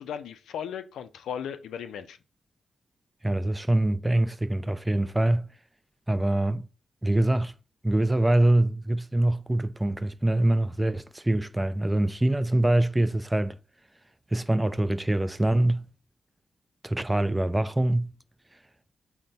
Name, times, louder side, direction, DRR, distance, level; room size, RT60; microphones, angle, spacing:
voice 1, 0.0-2.2, left 8 dB, 85° left, 0.3 m, -36 dB
voice 2, 3.2-5.5 6.1-6.7 7.0-7.5 7.8-13.6 14.3-15.8 16.8-18.1, right 1 dB, 15° right, 0.3 m, -24 dB
3.8 x 2.1 x 4.2 m
supercardioid pair, 45°, 0 cm